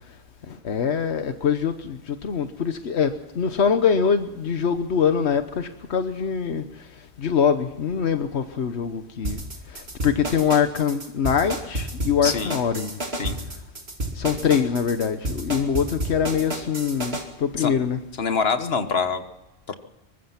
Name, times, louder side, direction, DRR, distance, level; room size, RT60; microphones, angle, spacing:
voice 1, 0.5-6.6 7.2-9.4 10.0-12.9 14.2-18.0, left 7 dB, 90° left, 9 dB, 1.3 m, -23 dB
sound 1, 9.2-17.2, right 1 dB, 70° right, 2.9 m, -30 dB
voice 2, 12.2-12.6 13.2-13.4 17.6-17.7 18.2-19.2 19.7-19.8, left 5 dB, 70° left, 9 dB, 1.6 m, -25 dB
23.5 x 20.5 x 5.9 m, 1.0 s
omnidirectional pair, 1.1 m